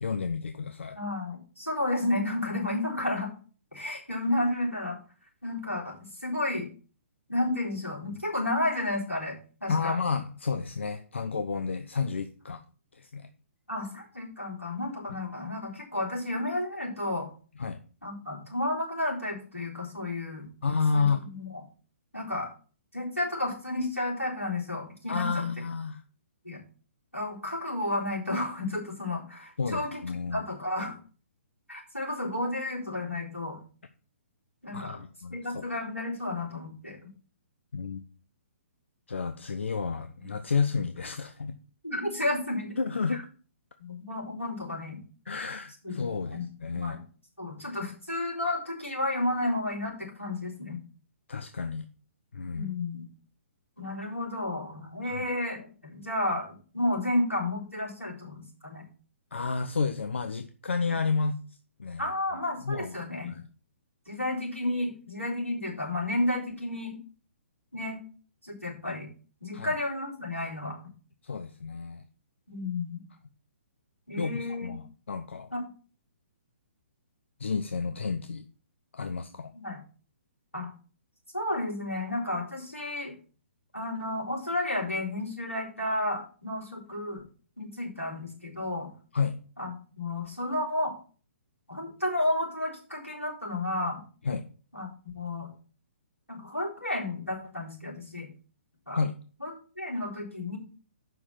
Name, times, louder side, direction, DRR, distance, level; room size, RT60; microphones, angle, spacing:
voice 1, 0.0-1.0 9.7-12.6 12.9-13.3 17.6-17.8 20.6-21.2 25.1-26.0 29.6-30.4 34.7-35.4 37.7-38.0 39.1-41.6 42.8-43.3 45.3-47.0 51.3-51.9 52.3-52.7 55.0-55.2 59.3-62.1 62.6-63.5 69.5-69.8 71.2-72.1 74.2-75.5 77.4-78.5 78.9-79.5 89.1-89.4 94.2-94.4 98.9-99.1, left 5 dB, 65° left, 9 dB, 0.7 m, -31 dB
voice 2, 0.9-3.3 3.7-5.0 5.4-6.7 7.3-10.0 13.7-17.3 18.0-20.5 20.9-21.5 22.1-22.5 22.9-25.4 26.4-26.6 27.1-30.0 30.3-31.0 31.7-33.6 34.6-35.0 35.3-37.0 41.8-42.8 43.8-45.0 45.8-46.0 46.3-47.0 47.4-50.8 52.5-53.0 53.8-58.8 62.0-63.3 64.1-67.0 67.7-68.0 68.4-69.1 69.4-70.8 72.5-73.0 74.1-74.7 75.5-75.6 79.5-79.8 80.5-80.7 81.3-83.1 83.7-87.2 87.6-88.9 89.6-90.9 91.7-94.0 94.7-94.9 95.1-95.5 96.3-98.3 98.9-99.0 99.4-99.5 99.8-100.6, left 1 dB, 90° left, -4 dB, 3.9 m, -32 dB
7.3 x 6.0 x 5.9 m, 0.40 s
figure-of-eight pair, 125°, 7 cm